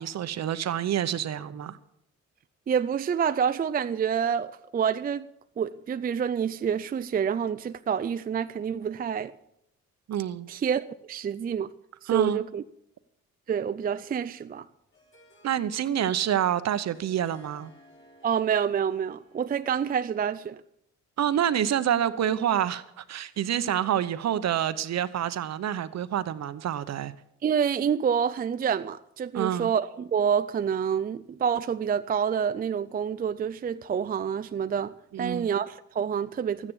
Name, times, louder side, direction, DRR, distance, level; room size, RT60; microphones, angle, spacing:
voice 1, 0.0-1.8 10.1-10.5 12.1-12.4 15.4-17.7 21.2-27.1 29.3-29.7 35.1-35.5, right 10 dB, 60° right, 0.9 m, -27 dB
voice 2, 2.7-5.3 5.6-9.3 10.5-11.7 12.0-12.6 13.5-14.7 18.2-20.6 27.4-36.7, right 7 dB, 30° right, 0.4 m, -27 dB
Harp, 14.5-19.8, equal, 40° left, 6.1 m, -57 dB
13.0 x 9.8 x 7.3 m
cardioid pair, 90°, 30 cm